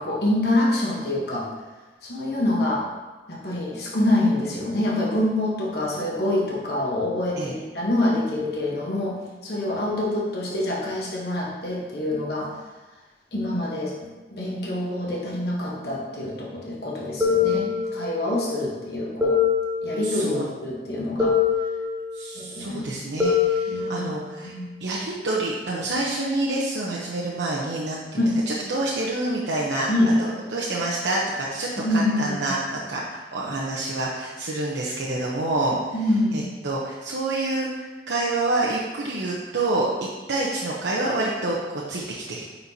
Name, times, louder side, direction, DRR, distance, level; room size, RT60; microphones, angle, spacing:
voice 1, 0.0-1.5 2.0-2.9 3.3-9.2 9.4-12.5 13.3-19.4 19.8-21.4 22.3-23.0 23.7-24.1 24.4-24.8 28.2-28.4 29.9-30.2 31.8-32.5 35.9-36.5, left 1 dB, 65° left, -4 dB, 1.1 m, -26 dB
sound 1, 17.2-18.4 19.2-20.4 21.2-22.4 23.2-24.4, left 6 dB, 10° right, 0.9 m, -24 dB
voice 2, 20.0-20.5 22.1-24.5 24.8-29.9 30.2-35.8 36.3-39.9 40.3-42.5, right 2 dB, 90° right, -5 dB, 0.8 m, -27 dB
9.5 x 4.4 x 2.8 m, 1.2 s
head